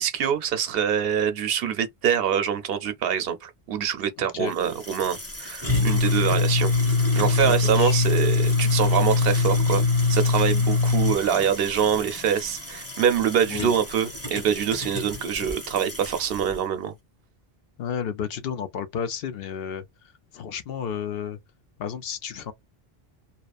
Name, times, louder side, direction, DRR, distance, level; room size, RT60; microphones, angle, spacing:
voice 1, 0.0-6.7 7.1-9.8 10.1-16.9, right 8 dB, 70° right, 0.8 m, -25 dB
voice 2, 4.2-4.5 7.4-8.1 13.5-13.7 17.8-19.8 20.3-21.4 21.8-22.5, left 8 dB, 70° left, 0.8 m, -32 dB
sound 1, 4.5-16.5, left 3 dB, 15° left, 0.9 m, -24 dB
2.9 x 2.0 x 2.3 m
omnidirectional pair, 1.0 m